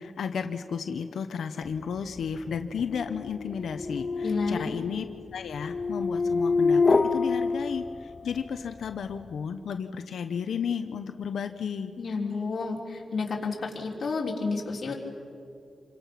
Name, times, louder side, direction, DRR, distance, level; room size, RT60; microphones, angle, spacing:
voice 1, 0.0-5.0 5.3-12.0, left 6 dB, 85° left, 8 dB, 1.0 m, -33 dB
sound 1, 2.0-8.5, left 4 dB, 30° left, 0.5 m, -27 dB
voice 2, 4.2-4.7 12.0-14.9, left 4 dB, 50° left, -3 dB, 3.8 m, -30 dB
28.0 x 24.5 x 6.0 m, 2.5 s
wide cardioid pair, 105°, 0 cm